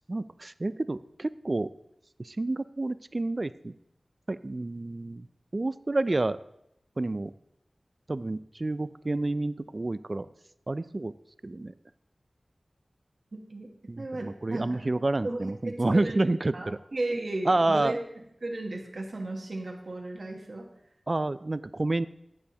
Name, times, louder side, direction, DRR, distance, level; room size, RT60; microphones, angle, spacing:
voice 1, 0.1-1.7 2.2-3.7 4.3-5.3 5.5-6.4 7.0-7.3 8.1-10.3 10.7-11.1 11.4-11.7 13.9-16.8 17.5-17.9 21.1-22.1, right 2 dB, 50° right, 15 dB, 0.3 m, -29 dB
voice 2, 13.3-13.7 14.0-14.9 15.2-15.4 15.6-18.0 18.4-20.7, right 2 dB, 65° right, 1 dB, 1.2 m, -35 dB
9.5 x 6.7 x 2.9 m, 0.77 s
cardioid pair, 40°, 0 cm